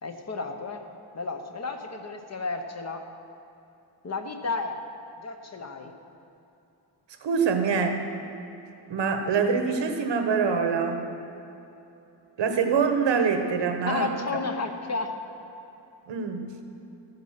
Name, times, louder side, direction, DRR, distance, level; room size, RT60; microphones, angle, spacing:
voice 1, 0.0-0.8 1.1-3.0 4.0-4.8 5.2-5.9 13.9-15.1, left 4 dB, 35° left, 5 dB, 1.0 m, -32 dB
voice 2, 7.2-8.0 8.9-11.1 12.4-14.1 16.1-16.5, right 5 dB, 75° right, 6 dB, 1.3 m, -25 dB
14.0 x 9.6 x 5.7 m, 2.9 s
wide cardioid pair, 165°, 43 cm